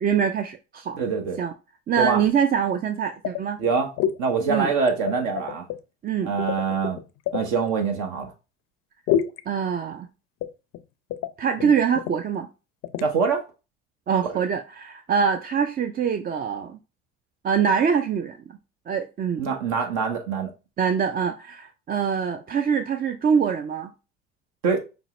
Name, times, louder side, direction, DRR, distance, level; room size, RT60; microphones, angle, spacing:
voice 1, 0.0-1.0 1.4-1.5 1.9-3.6 4.5-4.7 6.0-6.3 9.5-10.1 11.4-12.5 14.1-16.8 17.4-18.4 18.9-19.5 20.8-23.9, right 7 dB, 30° right, 0.4 m, -24 dB
voice 2, 1.0-1.4 2.0-2.2 3.6-3.9 4.2-5.7 6.2-7.0 7.3-8.3 13.0-13.5 14.2-14.3 19.4-20.5 24.6-24.9, right 5 dB, 65° right, 1.0 m, -24 dB
sound 1, 3.2-3.7 4.0-4.2 4.5-5.8 6.4-7.5 9.1-9.4 10.4-10.8 11.1-11.3 11.6-11.7 11.9-12.2 12.8-13.1, left 10 dB, 50° left, 0.5 m, -27 dB
5.4 x 2.0 x 3.1 m
hypercardioid pair, 70°, 33 cm